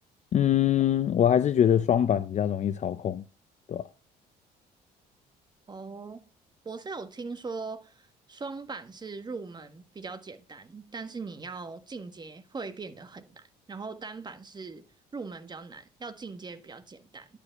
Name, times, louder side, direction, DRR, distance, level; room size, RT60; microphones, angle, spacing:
voice 1, 0.3-3.2 3.7-3.8, left 10 dB, 45° left, 0.6 m, -23 dB
voice 2, 5.7-6.2 6.6-14.8 15.1-17.3, right 4 dB, 25° right, 1.6 m, -40 dB
11.5 x 5.1 x 6.8 m
cardioid pair, 110°, 17 cm